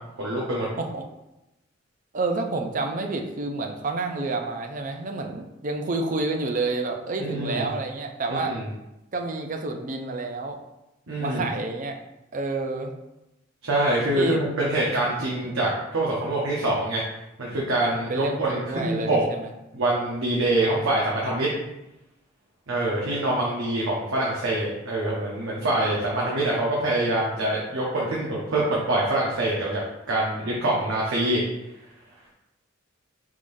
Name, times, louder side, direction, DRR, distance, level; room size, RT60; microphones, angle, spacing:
voice 1, 0.2-0.7 7.2-7.7 8.3-8.7 11.1-11.5 13.6-17.0 17.4-19.2 19.7-21.5 22.7-29.8 30.1-31.4, right 1 dB, 80° right, -4 dB, 0.8 m, -25 dB
voice 2, 2.1-8.6 9.1-10.6 11.2-12.0 12.3-12.9 14.2-14.4 15.3-15.5 18.1-19.5 20.6-20.9, right 3 dB, 40° right, 4 dB, 0.4 m, -29 dB
4.9 x 3.7 x 2.6 m, 0.93 s
head